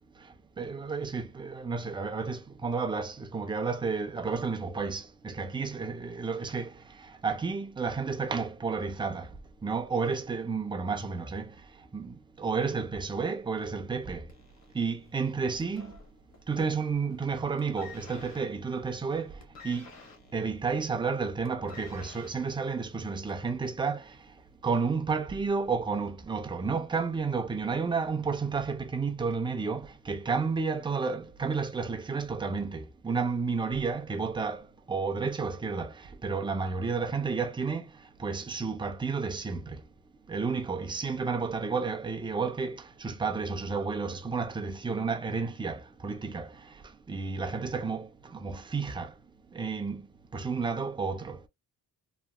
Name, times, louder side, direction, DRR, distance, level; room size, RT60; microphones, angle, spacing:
voice 1, 0.6-6.7 7.2-9.3 9.6-11.5 11.9-14.2 14.7-15.9 16.5-19.3 19.6-19.9 20.3-24.0 24.6-36.0 36.2-37.9 38.2-39.8 40.3-46.5 47.1-49.1 49.5-50.0 50.3-51.5, right 4 dB, 15° right, 0.3 m, -31 dB
sound 1, 14.3-16.6 16.9-17.3 17.6-23.5 24.4-24.5, left 5 dB, 50° left, 0.9 m, -52 dB
2.8 x 2.3 x 2.2 m
wide cardioid pair, 150°, 36 cm